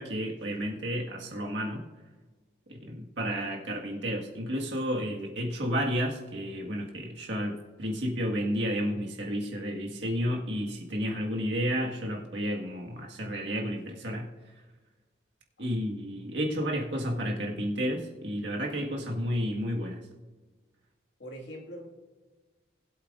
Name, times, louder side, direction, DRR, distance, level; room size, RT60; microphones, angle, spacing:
voice 1, 0.0-1.8 2.7-14.3 15.6-20.0, equal, 70° right, 0 dB, 1.7 m, -31 dB
voice 2, 21.2-21.9, equal, 65° left, -1 dB, 2.0 m, -43 dB
20.5 x 8.0 x 2.5 m, 1.3 s
head